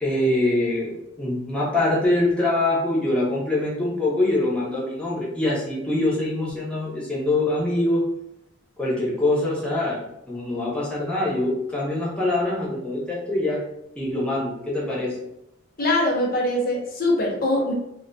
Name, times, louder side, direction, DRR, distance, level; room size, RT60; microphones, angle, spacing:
voice 1, 0.0-8.0 8.8-13.6 14.0-15.2, left 2 dB, 5° left, -6 dB, 0.6 m, -24 dB
voice 2, 15.8-17.7, left 1 dB, 45° left, -1 dB, 0.6 m, -22 dB
2.3 x 2.2 x 2.5 m, 0.84 s
head